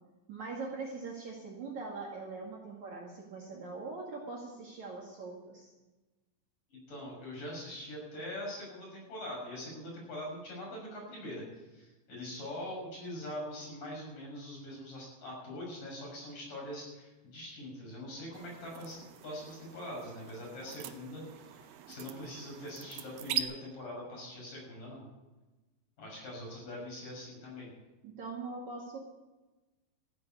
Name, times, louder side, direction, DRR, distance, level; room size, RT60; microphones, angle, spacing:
voice 1, 0.3-5.7 28.0-29.0, right 3 dB, 50° right, -2 dB, 3.0 m, -42 dB
voice 2, 6.7-19.0 19.2-25.1 26.0-27.7, left 1 dB, 45° left, -2 dB, 7.6 m, -43 dB
sound 1, 18.3-23.4, right 12 dB, 85° right, 2.1 m, -42 dB
14.5 x 10.0 x 8.3 m, 1.1 s
omnidirectional pair, 5.2 m